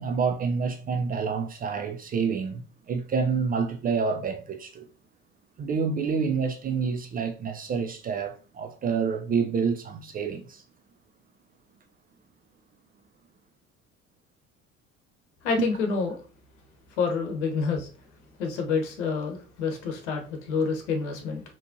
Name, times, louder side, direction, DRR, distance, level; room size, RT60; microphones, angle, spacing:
voice 1, 0.0-4.9 5.6-10.6 15.6-15.7, right 5 dB, 25° right, 0.4 m, -28 dB
voice 2, 15.4-16.2 17.0-17.9 18.4-21.4, left 5 dB, 65° left, 1.0 m, -28 dB
4.2 x 3.0 x 2.7 m
figure-of-eight pair, 60°, 37 cm